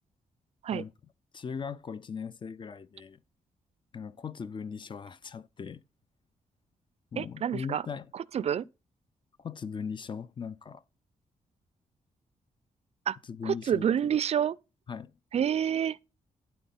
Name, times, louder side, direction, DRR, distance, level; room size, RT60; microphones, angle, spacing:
voice 1, 1.3-3.2 3.9-5.8 7.1-8.1 9.4-10.8 13.3-13.9 14.9-15.1, left 6 dB, 35° left, 0.5 m, -39 dB
voice 2, 7.2-7.8 8.1-8.7 13.1-13.2 13.4-14.6 15.3-16.0, right 9 dB, 55° right, 0.4 m, -28 dB
10.0 x 4.3 x 5.5 m
cardioid pair, 105°, 13 cm